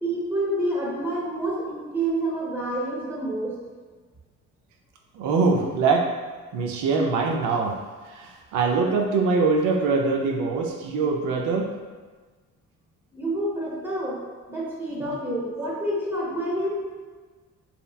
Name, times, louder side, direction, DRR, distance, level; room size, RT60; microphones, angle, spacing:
voice 1, 0.0-3.6 13.1-14.2 14.5-16.8, right 1 dB, 5° right, -6 dB, 0.9 m, -28 dB
voice 2, 5.2-6.1 6.5-7.7 8.1-11.7 15.0-15.2, right 4 dB, 80° right, 1 dB, 0.4 m, -23 dB
2.8 x 2.1 x 2.2 m, 1.4 s
cardioid pair, 90°, 30 cm